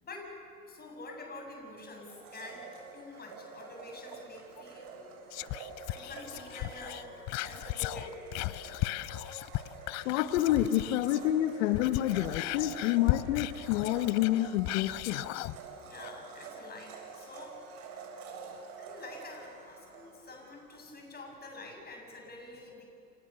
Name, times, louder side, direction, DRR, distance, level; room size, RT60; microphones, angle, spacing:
voice 1, 0.0-0.3 0.7-4.9 5.9-8.2 15.8-17.6 18.8-22.9, left 2 dB, 20° left, 2 dB, 7.5 m, -47 dB
Domestic sounds home sounds, 2.1-20.9, right 4 dB, 50° right, 7.6 m, -48 dB
Whispering, 5.3-11.3 11.6-15.6 16.0-16.1, left 19 dB, 35° left, 0.7 m, -36 dB
voice 2, 10.0-15.2, left 13 dB, 55° left, 9 dB, 1.3 m, -28 dB
29.0 x 28.0 x 7.0 m, 2.4 s
hypercardioid pair, 105°, 47 cm